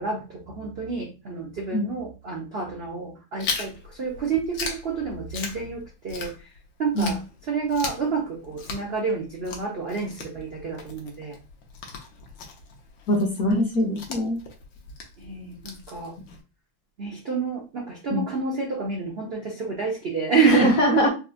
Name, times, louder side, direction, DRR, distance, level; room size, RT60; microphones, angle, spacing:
voice 1, 0.0-6.5 6.8-7.2 7.5-11.4 15.2-16.1 17.0-21.1, right 5 dB, 80° right, -1 dB, 0.5 m, -28 dB
Chewing mastication, 3.4-6.7 7.0-16.4, left 4 dB, 80° left, 1.4 m, -38 dB
voice 2, 13.1-14.4 18.1-18.3 20.4-21.1, left 1 dB, 60° left, 1 dB, 0.9 m, -22 dB
4.1 x 2.0 x 2.5 m, 0.31 s
omnidirectional pair, 2.0 m